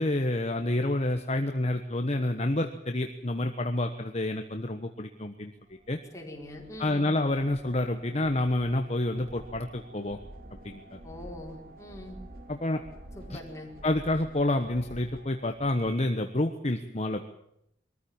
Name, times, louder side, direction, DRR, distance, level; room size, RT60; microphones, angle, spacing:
voice 1, 0.0-5.5 5.9-6.0 6.8-10.2 10.5-11.0 12.5-12.8 13.3-13.4 13.8-17.2, left 1 dB, 35° left, 6 dB, 1.2 m, -28 dB
sound 1, 5.7-16.3, right 1 dB, 50° right, 2.5 m, -49 dB
voice 2, 6.1-7.1 11.0-12.2 13.1-13.7, left 1 dB, 15° left, -1 dB, 4.7 m, -43 dB
23.0 x 14.0 x 8.9 m, 0.78 s
head